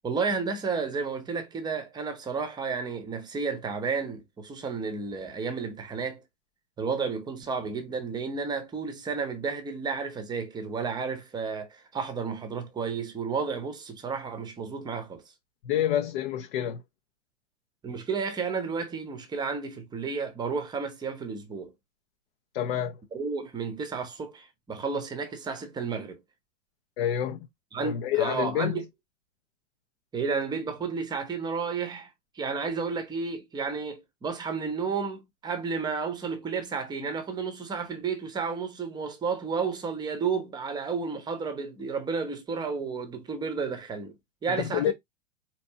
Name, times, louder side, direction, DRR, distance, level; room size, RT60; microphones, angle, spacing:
voice 1, 0.0-6.2 6.8-15.2 17.8-21.7 23.1-26.2 27.7-28.9 30.1-32.1 32.3-44.2 44.4-44.9, right 5 dB, 10° right, 0.8 m, -32 dB
voice 2, 15.6-16.8 22.5-23.0 27.0-27.4 27.8-28.8 44.5-44.9, left 11 dB, 45° left, 0.6 m, -28 dB
4.4 x 2.9 x 2.7 m
figure-of-eight pair, 100°, 39 cm